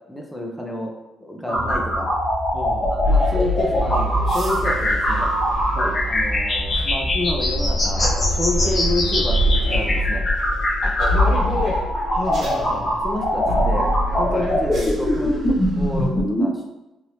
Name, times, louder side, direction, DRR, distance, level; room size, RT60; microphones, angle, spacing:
voice 1, 0.1-0.9 1.2-2.1 2.9-5.3 6.0-10.3 13.0-13.9 14.2-16.6, left 1 dB, 5° left, 0 dB, 0.5 m, -29 dB
voice 2, 1.5-1.9 2.5-3.0 5.7-6.0 8.6-8.7 10.8-11.8 12.1-13.0 14.3-14.5, left 2 dB, 60° left, 0 dB, 0.5 m, -30 dB
sound 1, 1.5-16.5, left 1 dB, 35° left, 0.9 m, -22 dB
sound 2, 3.0-16.1, equal, 60° right, 1.0 m, -25 dB
3.1 x 2.6 x 2.9 m, 0.96 s
cardioid pair, 90°, 0 cm